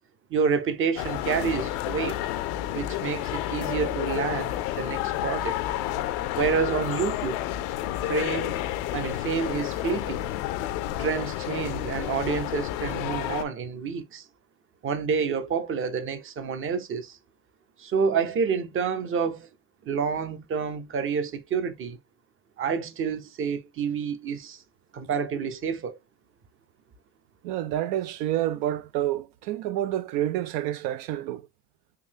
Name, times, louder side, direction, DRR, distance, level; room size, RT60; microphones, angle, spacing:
voice 1, 0.3-2.2 2.7-5.6 6.3-7.4 8.0-8.6 8.9-10.3 11.0-14.2 14.8-17.2 17.8-19.5 19.9-22.0 22.6-24.6 24.9-26.0, right 6 dB, 35° right, 0.6 m, -28 dB
sound 1, 1.0-13.4, left 13 dB, 80° left, 0.5 m, -30 dB
voice 2, 27.4-31.5, right 12 dB, 80° right, 0.5 m, -28 dB
3.7 x 2.7 x 2.7 m
supercardioid pair, 100°, 38 cm